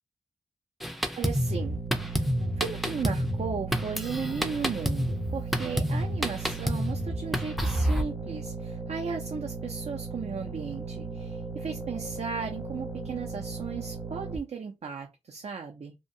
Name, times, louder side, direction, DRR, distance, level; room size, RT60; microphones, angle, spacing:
Drum kit, 0.8-8.0, equal, ahead, 0.4 m, -29 dB
voice 1, 1.2-15.9, right 5 dB, 65° right, 0.5 m, -36 dB
sound 1, 1.3-14.4, right 4 dB, 20° right, 0.8 m, -37 dB
2.7 x 2.1 x 2.6 m
wide cardioid pair, 85°, 12 cm